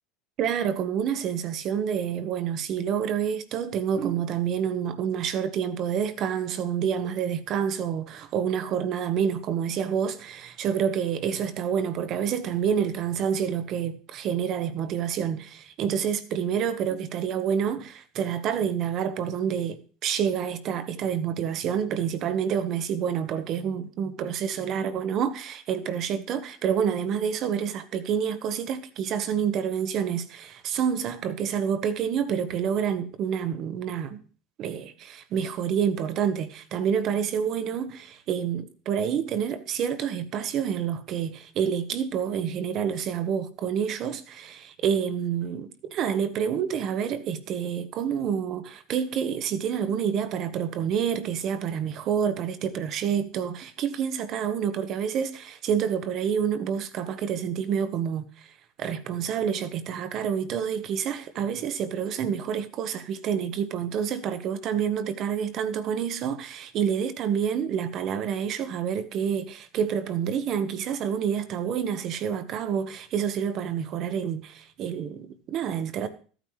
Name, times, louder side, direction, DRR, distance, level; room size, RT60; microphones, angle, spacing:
voice 1, 0.4-34.2 34.6-58.5 58.8-76.1, right 8 dB, 50° right, 1.2 m, -28 dB
14.0 x 9.2 x 3.2 m
supercardioid pair, 100°, 0 cm